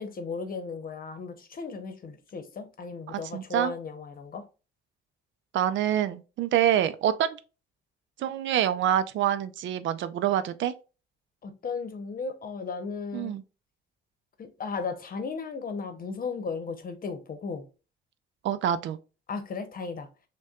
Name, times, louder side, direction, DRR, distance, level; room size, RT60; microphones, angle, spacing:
voice 1, 0.0-4.4 11.4-13.3 14.4-17.6 19.3-20.1, left 4 dB, 45° left, 0.8 m, -35 dB
voice 2, 3.1-3.7 5.5-7.4 8.2-10.7 13.1-13.4 18.4-19.0, right 10 dB, 70° right, 0.4 m, -26 dB
6.2 x 2.2 x 2.3 m
cardioid pair, 90°, 20 cm